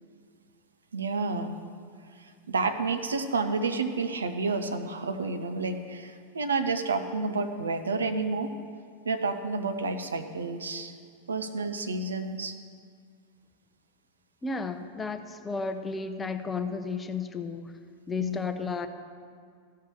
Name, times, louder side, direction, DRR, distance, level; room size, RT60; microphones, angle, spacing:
voice 1, 0.9-1.6 2.2-8.5 9.1-10.9 11.3-12.5 18.2-18.5, right 3 dB, 70° right, 8 dB, 0.6 m, -30 dB
voice 2, 14.4-17.7 18.1-18.9, left 4 dB, 15° left, 8 dB, 0.6 m, -33 dB
14.5 x 5.7 x 6.4 m, 2.1 s
figure-of-eight pair, 90°, 0 cm